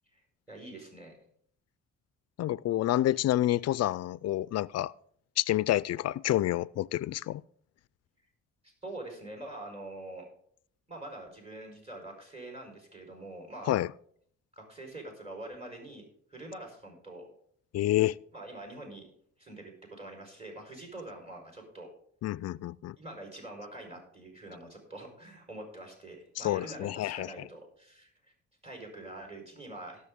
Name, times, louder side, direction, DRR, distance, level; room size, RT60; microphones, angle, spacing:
voice 1, 0.5-1.2 8.6-10.3 10.9-13.8 14.5-16.0 16.3-17.3 18.3-19.1 19.4-21.9 23.0-28.1 28.6-30.1, right 1 dB, 20° right, 4.6 m, -45 dB
voice 2, 2.4-4.9 5.4-7.4 13.7-13.9 17.7-18.2 22.2-23.0 26.4-27.3, left 14 dB, 55° left, 0.4 m, -28 dB
18.5 x 6.8 x 3.7 m
cardioid pair, 90°, 30 cm